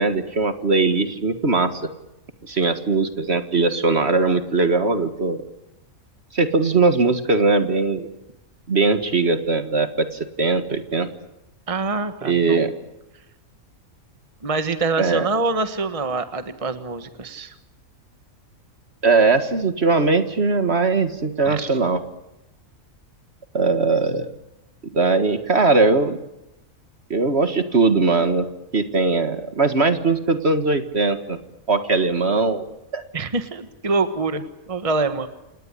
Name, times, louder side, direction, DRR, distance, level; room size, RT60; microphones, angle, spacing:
voice 1, 0.0-1.9 2.4-5.4 6.3-8.1 8.7-11.1 12.2-12.7 15.0-15.3 19.0-22.0 23.5-24.3 24.9-26.2 27.1-28.5 28.7-31.4 31.7-32.7 32.9-33.0, right 3 dB, 45° right, 9 dB, 1.9 m, -20 dB
voice 2, 11.7-12.6 14.4-17.5 21.4-21.8 33.1-35.3, right 3 dB, 25° right, 9 dB, 1.5 m, -25 dB
28.5 x 19.0 x 9.9 m, 0.93 s
omnidirectional pair, 1.5 m